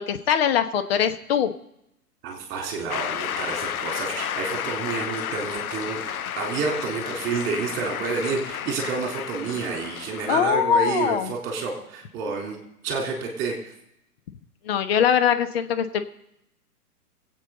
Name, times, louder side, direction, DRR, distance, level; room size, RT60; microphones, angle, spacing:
voice 1, 0.0-1.5 10.3-11.3 14.7-16.1, left 8 dB, 40° left, 9 dB, 1.1 m, -22 dB
voice 2, 2.2-12.6 12.8-13.7, right 5 dB, 25° right, 0 dB, 3.7 m, -29 dB
Shout / Cheering / Applause, 2.9-10.4, left 9 dB, 65° left, 0.7 m, -32 dB
24.5 x 8.5 x 4.0 m, 0.81 s
figure-of-eight pair, 115°, 47 cm